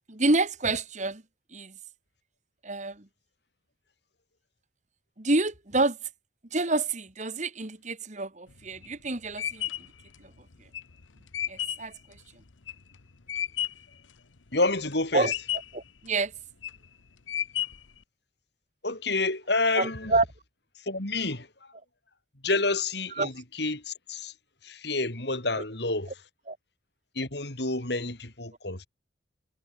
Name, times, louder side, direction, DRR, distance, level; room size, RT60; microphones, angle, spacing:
voice 1, 0.1-1.2 1.5-1.8 2.6-3.1 5.2-6.0 6.5-9.7 10.2-10.3 11.5-11.9 15.1-15.3 15.7-16.3 19.8-20.2 23.2-23.3 26.5-26.6, right 2 dB, 40° right, 1.9 m, -28 dB
sound 1, 8.5-13.9 14.4-14.9 15.2-15.9 16.4-16.9 17.3-18.0, left 11 dB, 90° left, 1.0 m, -33 dB
voice 2, 14.5-15.3 18.8-20.1 20.8-21.5 22.4-24.3 24.6-26.1 27.2-28.9, left 3 dB, 60° left, 3.8 m, -29 dB
head